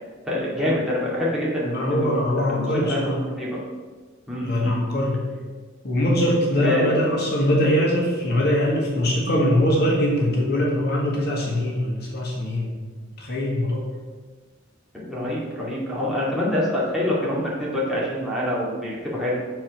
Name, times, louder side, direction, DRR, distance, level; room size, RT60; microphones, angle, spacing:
voice 1, 0.3-3.6 4.3-4.8 6.6-6.9 14.9-19.4, left 1 dB, ahead, -7 dB, 2.1 m, -26 dB
voice 2, 1.6-3.2 4.4-5.2 5.8-12.8 13.2-13.9, left 1 dB, 55° left, -3 dB, 1.8 m, -22 dB
7.4 x 4.7 x 5.9 m, 1.4 s
head